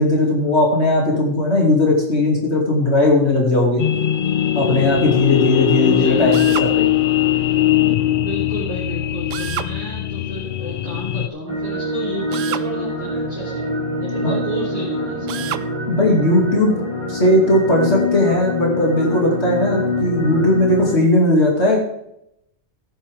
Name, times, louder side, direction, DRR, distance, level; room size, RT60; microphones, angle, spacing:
voice 1, 0.0-3.8 4.5-6.9 14.2-14.3 15.9-16.8 17.1-21.8, left 1 dB, 50° left, -2 dB, 2.9 m, -17 dB
sound 1, 3.8-11.3, left 12 dB, 70° left, 0.5 m, -20 dB
voice 2, 5.8-6.8 8.1-13.6 14.0-15.5, equal, 10° right, -8 dB, 3.4 m, -31 dB
Drill, 6.3-6.7 9.3-9.7 12.3-12.7 15.3-15.7, right 11 dB, 70° right, 0.9 m, -28 dB
sound 2, 11.5-20.9, left 2 dB, 25° right, 3.5 m, -25 dB
15.5 x 10.0 x 3.6 m, 0.79 s
omnidirectional pair, 1.4 m